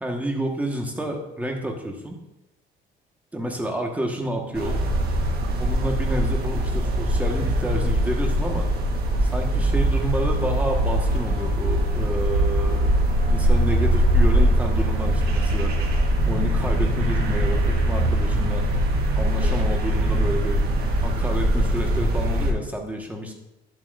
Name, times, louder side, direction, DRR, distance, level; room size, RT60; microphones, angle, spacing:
voice 1, 0.0-2.2 3.3-4.8 5.6-8.7 9.2-12.9 13.3-15.7 16.2-18.7 19.2-20.6 21.0-23.3, right 1 dB, 10° right, 2 dB, 1.5 m, -29 dB
sound 1, 4.5-22.5, right 1 dB, 65° right, 1.4 m, -22 dB
11.0 x 7.7 x 2.6 m, 0.95 s
cardioid pair, 110°, 17 cm